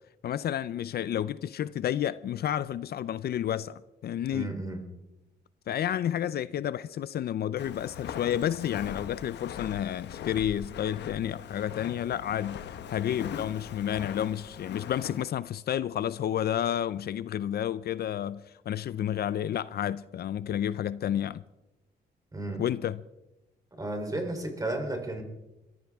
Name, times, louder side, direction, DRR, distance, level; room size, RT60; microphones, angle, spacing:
voice 1, 0.2-4.5 5.7-12.6 12.9-21.4 22.6-23.0, left 10 dB, 65° left, 0.5 m, -30 dB
voice 2, 4.3-4.8 22.3-22.6 23.7-25.2, right 2 dB, 20° right, 3.4 m, -33 dB
Walk footsteps, 7.6-15.3, left 8 dB, 85° left, 1.0 m, -41 dB
24.0 x 14.0 x 3.6 m
cardioid pair, 105°, 18 cm